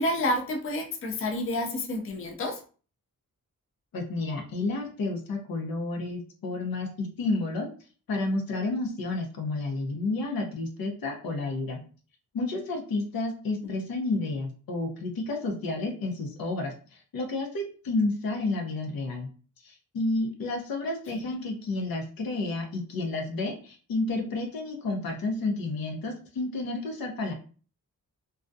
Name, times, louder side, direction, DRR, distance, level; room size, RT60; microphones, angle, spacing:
voice 1, 0.0-2.6 13.6-13.7 21.1-21.2, left 1 dB, 40° left, 3 dB, 0.5 m, -29 dB
voice 2, 3.9-7.7 8.1-11.8 12.3-19.3 19.6-27.3, left 2 dB, 80° left, 2 dB, 0.7 m, -31 dB
2.3 x 2.2 x 2.5 m, 0.39 s
cardioid pair, 70°, 35 cm